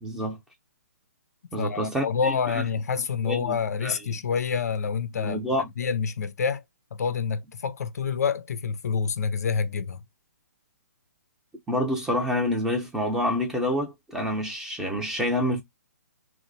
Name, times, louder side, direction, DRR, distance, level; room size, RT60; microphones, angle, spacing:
voice 1, 0.0-0.4 1.5-2.6 3.2-4.0 5.2-5.7 11.7-15.6, left 1 dB, 5° right, 0.6 m, -28 dB
voice 2, 1.6-5.5 5.8-6.6 6.9-10.0, left 6 dB, 65° left, 0.4 m, -27 dB
2.9 x 2.0 x 2.5 m
figure-of-eight pair, 135°, 9 cm